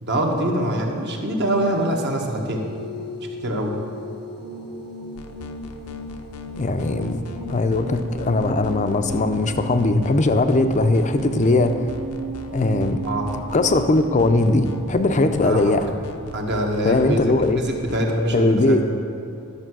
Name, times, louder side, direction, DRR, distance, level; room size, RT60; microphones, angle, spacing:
voice 1, 0.0-2.7 3.4-3.7 13.0-13.4 15.4-15.8 16.3-18.8, right 1 dB, 50° right, 1 dB, 1.3 m, -24 dB
sound 1, 2.6-15.1, right 2 dB, 75° right, 1.3 m, -35 dB
sound 2, 5.2-18.0, left 2 dB, 80° left, 0.7 m, -40 dB
voice 2, 6.6-7.2 7.5-11.9 12.5-13.0 13.5-15.9 16.8-17.6 18.3-18.9, left 2 dB, 35° left, 9 dB, 0.5 m, -19 dB
11.5 x 6.6 x 6.1 m, 2.5 s
head